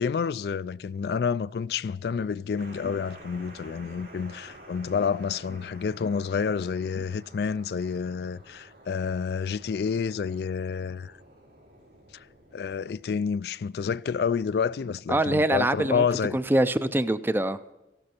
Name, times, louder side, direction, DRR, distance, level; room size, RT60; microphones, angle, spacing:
voice 1, 0.0-11.1 12.5-16.4, left 6 dB, 60° left, 0.3 m, -29 dB
sound 1, 2.6-13.1, right 1 dB, 80° right, 4.7 m, -51 dB
voice 2, 15.1-16.1 16.3-17.6, right 1 dB, 10° right, 0.4 m, -24 dB
15.5 x 11.5 x 4.4 m
head